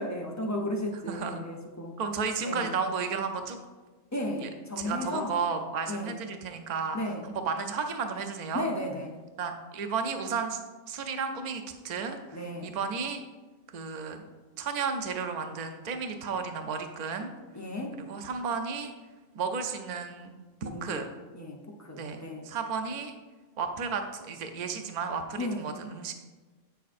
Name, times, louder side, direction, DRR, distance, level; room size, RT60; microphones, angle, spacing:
voice 1, 0.0-1.9 2.4-2.8 4.1-5.4 5.9-6.1 6.9-7.3 8.5-9.2 12.3-12.7 17.5-18.0 20.6-21.1 21.3-22.5 25.4-25.7, left 1 dB, 25° left, 0 dB, 0.3 m, -34 dB
voice 2, 1.1-1.4 2.0-3.6 4.4-4.5 4.8-7.0 7.2-8.7 9.4-10.6 10.9-13.2 13.7-14.2 14.6-17.3 18.0-18.9 19.3-20.3 20.6-21.1 22.0-23.1 23.6-26.1, right 5 dB, 50° right, 6 dB, 0.5 m, -33 dB
8.2 x 6.6 x 2.5 m, 1.3 s
omnidirectional pair, 1.3 m